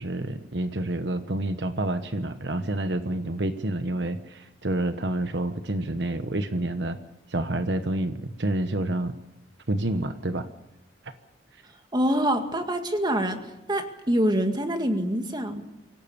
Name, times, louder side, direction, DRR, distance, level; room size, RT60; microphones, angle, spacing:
voice 1, 0.0-7.0 7.3-9.1 9.7-10.5 11.0-11.1, right 1 dB, 65° right, 9 dB, 1.2 m, -28 dB
voice 2, 11.9-13.4 13.7-15.6, equal, 25° right, 6 dB, 2.0 m, -25 dB
25.0 x 17.5 x 7.1 m, 0.95 s
head